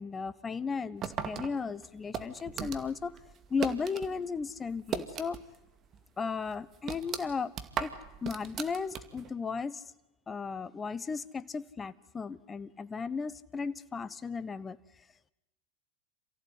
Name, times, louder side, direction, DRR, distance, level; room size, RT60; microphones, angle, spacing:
voice 1, 0.0-3.1 3.5-5.4 6.2-7.5 7.8-7.9 8.2-9.8 10.3-14.8, left 5 dB, 20° left, 15 dB, 1.1 m, -35 dB
sound 1, 1.0-4.1 4.4-5.6 5.9-6.0 6.5-9.3, right 8 dB, 40° right, 2.3 m, -37 dB
28.0 x 15.5 x 9.6 m, 0.94 s
hypercardioid pair, 100°, 0 cm